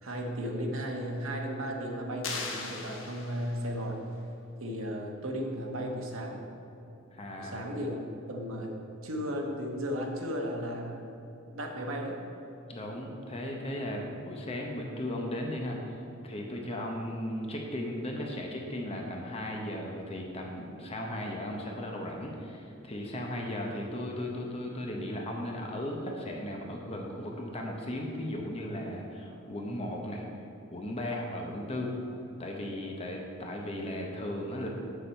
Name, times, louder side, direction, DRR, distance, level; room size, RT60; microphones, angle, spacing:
voice 1, 0.0-4.0 4.6-6.4 7.4-8.0 8.3-8.7 9.0-11.2 11.5-12.2, equal, 75° right, 1 dB, 1.1 m, -35 dB
sound 1, 2.2-3.8, left 4 dB, 70° left, 1.0 m, -38 dB
voice 2, 7.1-7.6 12.7-16.0 16.2-30.2 30.7-31.9 32.4-34.7, left 1 dB, 30° left, 0 dB, 0.8 m, -36 dB
7.0 x 6.9 x 4.4 m, 2.9 s
head